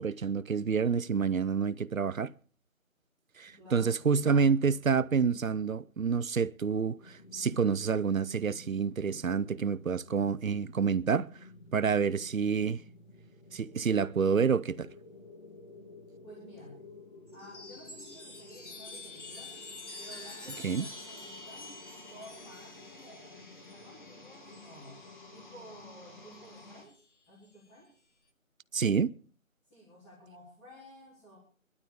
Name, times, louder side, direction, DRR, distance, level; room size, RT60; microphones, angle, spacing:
voice 1, 0.0-2.3 3.4-11.3 11.7-12.8 13.5-14.9 20.6-20.9 28.7-29.1, right 6 dB, 75° right, 0.7 m, -28 dB
voice 2, 3.6-4.0 16.2-16.7 17.3-19.6 19.9-21.7 22.0-25.0 25.3-27.9 29.7-31.4, equal, 5° left, 2.6 m, -53 dB
sound 1, 7.0-26.8, left 2 dB, 35° left, 2.2 m, -52 dB
Chime, 17.3-25.1 26.3-27.0, left 2 dB, 55° left, 1.9 m, -47 dB
23.0 x 12.0 x 3.5 m
figure-of-eight pair, 165°, 40 cm